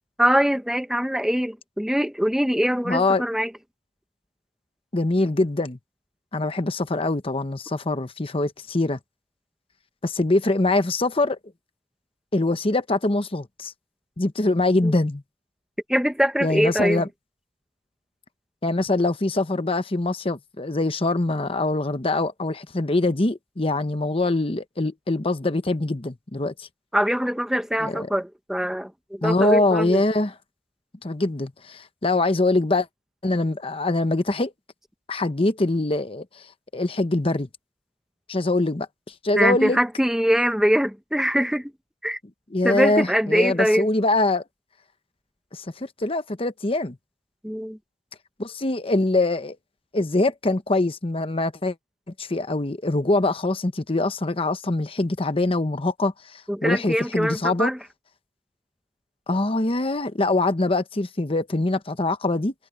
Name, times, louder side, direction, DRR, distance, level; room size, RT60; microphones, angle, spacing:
voice 1, 0.2-3.5 14.8-14.9 15.9-17.1 26.9-30.0 39.4-41.7 42.0-42.2 42.6-43.9 47.4-47.8 56.5-57.8, equal, 5° right, 0.8 m, -23 dB
voice 2, 2.9-3.2 4.9-5.8 6.3-9.0 10.0-11.4 12.3-13.7 14.2-15.2 16.4-17.1 18.6-26.7 27.8-28.1 29.2-30.3 31.0-32.9 33.2-34.5 35.1-36.2 36.7-37.5 38.3-38.9 39.2-39.8 42.5-44.4 45.5-47.0 48.4-49.6 49.9-51.7 52.2-57.7 59.3-62.5, left 2 dB, 30° left, 0.9 m, -23 dB
head